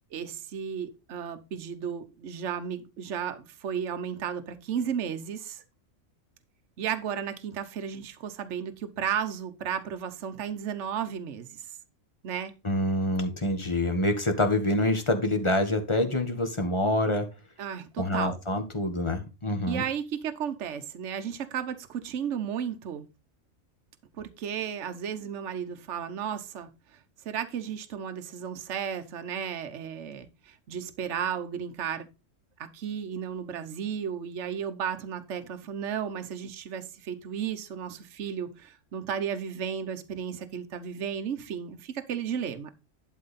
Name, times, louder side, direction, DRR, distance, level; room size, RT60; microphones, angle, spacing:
voice 1, 0.1-5.6 6.8-11.6 12.2-12.5 17.6-18.4 19.7-23.1 24.2-26.7 27.2-32.1 32.6-42.7, right 8 dB, 65° right, 1.2 m, -34 dB
voice 2, 12.6-17.3 18.0-19.8, left 1 dB, 20° left, 1.4 m, -26 dB
11.5 x 4.8 x 4.1 m
omnidirectional pair, 1.4 m